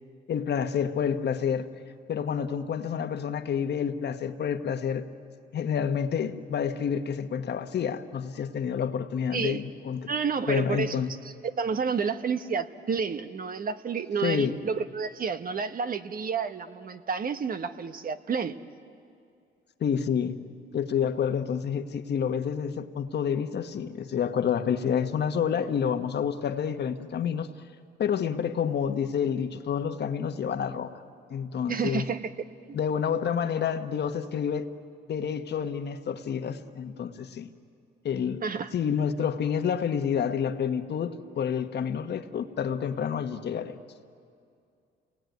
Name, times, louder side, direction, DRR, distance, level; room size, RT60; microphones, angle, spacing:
voice 1, 0.3-1.7 2.1-5.1 5.5-10.1 10.5-11.1 14.2-14.6 19.8-20.4 20.7-27.5 28.0-31.0 31.3-32.1 32.7-34.7 35.1-37.5 38.0-38.4 38.7-43.8, left 7 dB, 60° left, 8 dB, 1.3 m, -28 dB
voice 2, 9.3-9.6 10.1-10.9 11.2-18.6 31.7-32.2 32.7-32.8 38.4-38.7, right 5 dB, 45° right, 10 dB, 1.1 m, -30 dB
28.5 x 19.0 x 9.3 m, 2.4 s
cardioid pair, 90°, 20 cm